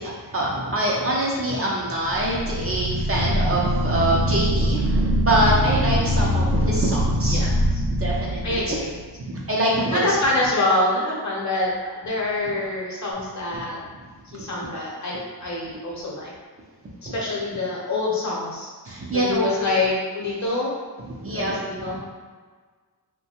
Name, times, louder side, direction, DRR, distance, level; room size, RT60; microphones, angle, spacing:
voice 1, 0.0-7.4 7.9-8.8 9.2-10.2 13.5-13.6 14.4-14.5 17.1-17.2 18.8-19.6 21.2-22.0, right 1 dB, 35° right, -4 dB, 0.5 m, -25 dB
sound 1, 2.0-9.1, equal, 50° right, 0.9 m, -23 dB
voice 2, 7.2-7.8 8.4-8.9 9.9-13.8 14.3-16.3 17.1-18.7 19.1-20.7 21.3-22.0, left 2 dB, 45° left, -5 dB, 0.8 m, -26 dB
2.7 x 2.2 x 2.8 m, 1.5 s
wide cardioid pair, 100°, 40 cm